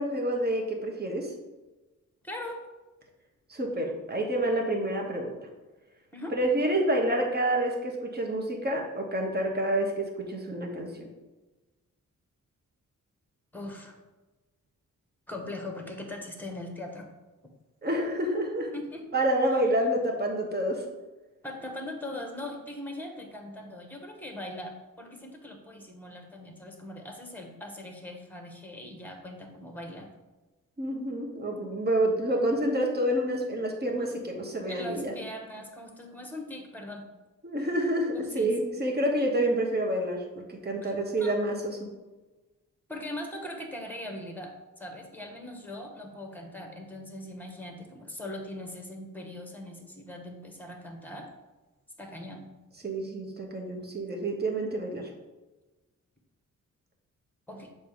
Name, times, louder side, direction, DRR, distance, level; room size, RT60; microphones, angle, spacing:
voice 1, 0.0-1.3 3.5-5.3 6.3-11.1 17.8-18.7 19.1-20.8 30.8-35.1 37.4-41.9 52.8-55.1, right 1 dB, 30° right, 1 dB, 1.2 m, -28 dB
voice 2, 2.2-2.6 6.1-6.3 13.5-14.0 15.3-17.1 18.7-19.0 21.4-30.1 34.7-37.0 38.1-38.5 40.8-41.3 42.9-51.3 52.0-52.5 57.5-57.7, left 1 dB, 5° left, 2 dB, 1.2 m, -40 dB
6.6 x 2.9 x 5.0 m, 1.2 s
cardioid pair, 70°, 32 cm